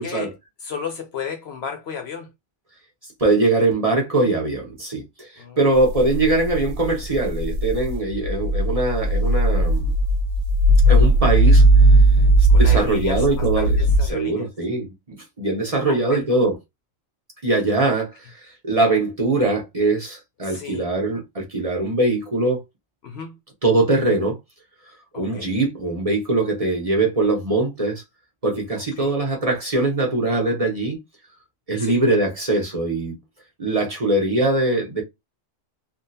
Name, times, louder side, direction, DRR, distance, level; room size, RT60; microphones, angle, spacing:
voice 1, 0.0-2.3 5.4-5.6 9.2-9.3 12.5-14.5 15.9-16.2 20.4-20.9 23.0-23.4 25.1-25.5 29.0-29.2 31.8-32.0, left 6 dB, 65° left, 0.7 m, -34 dB
voice 2, 3.2-5.3 5.6-9.9 10.9-11.6 12.5-13.8 14.1-14.9 15.4-16.5 17.4-22.6 23.6-24.4 25.1-28.0 28.4-31.0 31.7-33.2 33.6-35.0, right 2 dB, 30° right, 0.9 m, -22 dB
sound 1, 5.8-14.1, right 1 dB, 85° right, 1.0 m, -17 dB
3.5 x 2.4 x 2.6 m
omnidirectional pair, 1.3 m